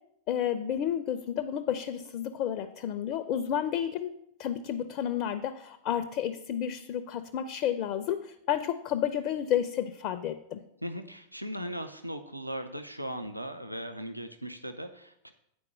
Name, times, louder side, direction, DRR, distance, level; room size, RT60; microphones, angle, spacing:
voice 1, 0.3-4.1 4.4-10.6, left 9 dB, 40° left, 8 dB, 0.5 m, -31 dB
voice 2, 10.8-15.3, equal, 90° right, 7 dB, 0.5 m, -38 dB
8.5 x 4.7 x 6.0 m, 0.77 s
figure-of-eight pair, 90°, 0 cm